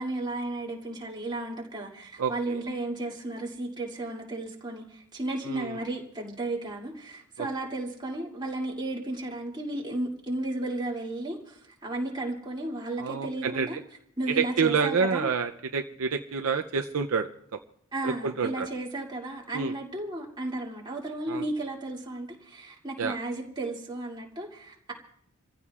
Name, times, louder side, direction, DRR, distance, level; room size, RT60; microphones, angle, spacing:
voice 1, 0.0-13.8 14.2-15.3 17.9-24.9, right 2 dB, 20° right, -3 dB, 2.6 m, -34 dB
voice 2, 2.2-2.6 5.4-5.8 7.4-7.5 13.0-13.8 14.3-17.3 18.0-18.7 19.5-19.7 21.3-21.4 23.0-23.2, right 5 dB, 70° right, 6 dB, 0.6 m, -28 dB
28.5 x 15.5 x 2.4 m, 0.69 s
head